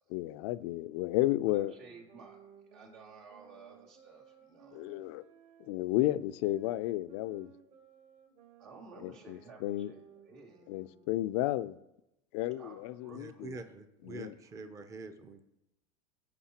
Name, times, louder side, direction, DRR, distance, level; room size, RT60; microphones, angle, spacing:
voice 1, 0.1-1.7 4.7-5.2 5.6-7.5 9.0-9.9 10.7-11.8 12.3-13.6 14.0-14.4, left 16 dB, 75° left, 0.4 m, -32 dB
sound 1, 1.5-11.5, right 6 dB, 55° right, 1.6 m, -59 dB
voice 2, 1.5-2.4 2.7-4.9 8.6-10.7 12.6-13.5, right 4 dB, 85° right, 2.8 m, -54 dB
voice 3, 13.1-15.4, right 4 dB, 20° right, 0.6 m, -46 dB
15.5 x 5.5 x 2.9 m
supercardioid pair, 125°, 15 cm